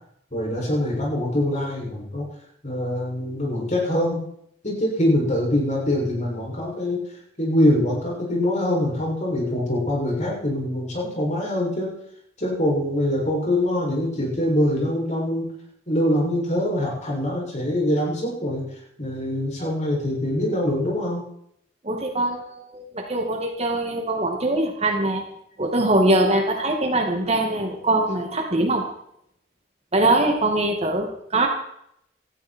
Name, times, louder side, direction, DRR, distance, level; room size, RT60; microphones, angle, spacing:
voice 1, 0.3-2.2 2.6-4.2 4.6-7.0 7.4-11.9 12.4-15.5 15.9-18.6 19.0-21.2, left 1 dB, 40° left, -2 dB, 6.9 m, -24 dB
voice 2, 21.8-25.2 25.6-28.9 29.9-31.5, right 2 dB, 35° right, 3 dB, 2.3 m, -22 dB
18.0 x 14.0 x 4.6 m, 0.72 s
head